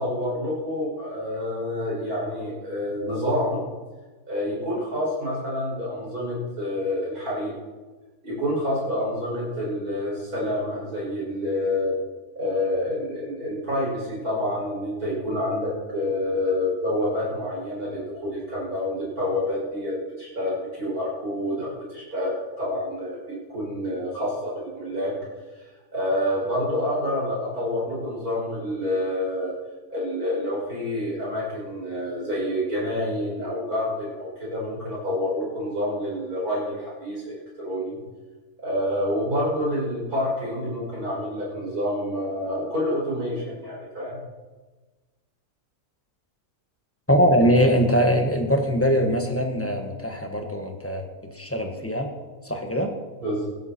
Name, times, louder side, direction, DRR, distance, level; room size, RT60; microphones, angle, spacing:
voice 1, 0.0-3.6 4.3-7.5 8.2-11.9 12.3-25.1 25.6-25.7 25.9-29.5 29.9-38.0 38.6-44.2 53.2-53.5, left 1 dB, 70° right, -5 dB, 6.7 m, -28 dB
voice 2, 47.1-51.0 51.3-52.1 52.4-52.9, equal, 10° left, 3 dB, 1.4 m, -22 dB
16.0 x 12.5 x 4.5 m, 1.3 s
omnidirectional pair, 1.6 m